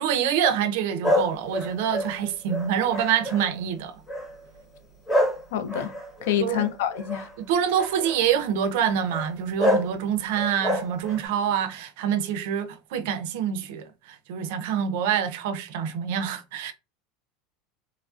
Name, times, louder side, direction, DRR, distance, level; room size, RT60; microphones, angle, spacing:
voice 1, 0.0-3.9 6.4-6.7 7.5-16.7, right 8 dB, 65° right, 0.4 m, -26 dB
sound 1, 1.0-3.6 4.1-4.4 5.1-7.3 7.7-8.2 9.1-9.3 9.6-9.9 10.4-11.2, left 1 dB, 15° left, 1.0 m, -27 dB
voice 2, 5.5-5.9 6.2-7.3, left 10 dB, 80° left, 0.4 m, -27 dB
3.1 x 2.4 x 2.3 m
supercardioid pair, 170°, 0 cm